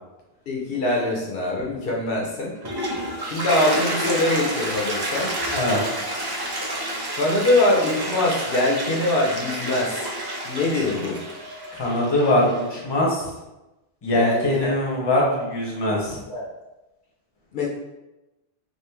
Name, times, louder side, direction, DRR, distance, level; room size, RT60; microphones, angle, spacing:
voice 1, 0.5-2.5 3.2-5.3 7.1-10.1 10.4-11.2 14.1-14.8 16.3-16.4 17.5-17.7, left 2 dB, 65° left, -2 dB, 0.8 m, -23 dB
Toilet flush, 2.4-12.8, right 1 dB, 30° right, 0.4 m, -29 dB
voice 2, 11.8-13.3 14.0-16.2, left 1 dB, 30° left, -3 dB, 0.7 m, -22 dB
3.0 x 2.5 x 3.3 m, 1.0 s
omnidirectional pair, 1.1 m